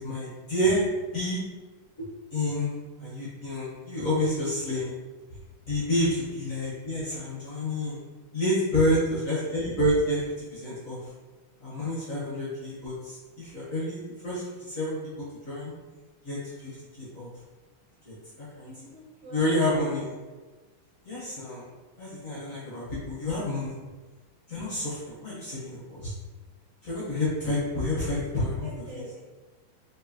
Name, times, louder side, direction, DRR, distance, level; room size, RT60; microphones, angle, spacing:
voice 1, 0.0-0.9 1.1-1.4 2.0-2.7 3.0-4.9 5.7-8.0 8.3-11.0 11.6-15.7 16.2-17.3 18.0-18.7 19.3-20.1 21.0-21.7 22.0-23.7 24.5-26.1 26.8-28.7, left 1 dB, 45° left, -8 dB, 1.3 m, -29 dB
voice 2, 18.6-19.5 28.6-29.2, right 1 dB, 60° right, -5 dB, 1.5 m, -46 dB
4.7 x 3.5 x 2.8 m, 1.3 s
omnidirectional pair, 2.4 m